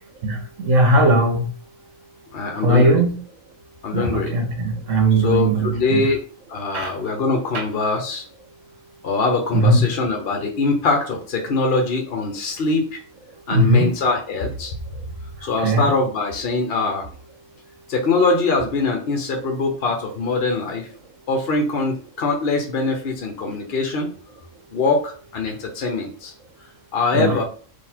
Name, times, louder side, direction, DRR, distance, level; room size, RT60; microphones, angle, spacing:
voice 1, 0.2-1.5 2.6-3.2 3.9-6.1 6.7-6.9 7.5-7.6 9.5-9.9 13.5-13.9 15.4-15.9 27.1-27.3, right 1 dB, 70° right, 2 dB, 1.4 m, -18 dB
voice 2, 2.3-3.0 3.8-4.3 5.2-6.2 6.5-8.2 9.0-13.0 13.5-14.7 15.4-17.1 17.9-20.9 21.3-24.1 24.7-26.3 26.9-27.4, left 3 dB, 50° left, 3 dB, 1.0 m, -22 dB
3.8 x 2.8 x 4.4 m, 0.43 s
omnidirectional pair, 1.4 m